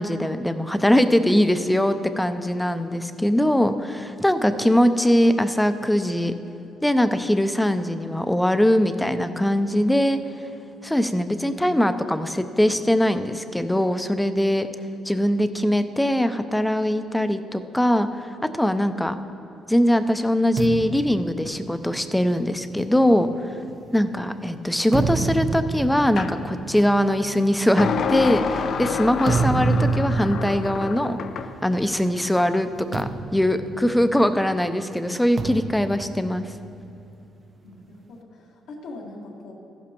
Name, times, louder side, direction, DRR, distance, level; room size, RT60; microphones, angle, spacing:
voice 1, 0.0-6.3 6.8-10.2 10.8-14.7 15.1-19.1 19.7-23.6 23.9-31.2 31.6-36.5, equal, 5° left, 10 dB, 0.5 m, -21 dB
sound 1, 20.6-24.2 24.7-32.1 32.4-32.6 32.9-34.5 35.4-37.1, right 4 dB, 45° right, 0.6 m, -29 dB
sound 2, 26.2-26.4 27.8-31.5, left 6 dB, 60° left, 0.6 m, -28 dB
voice 2, 37.6-39.5, left 2 dB, 85° left, -2 dB, 1.9 m, -41 dB
14.0 x 11.5 x 2.9 m, 2.9 s
cardioid pair, 90°, 0 cm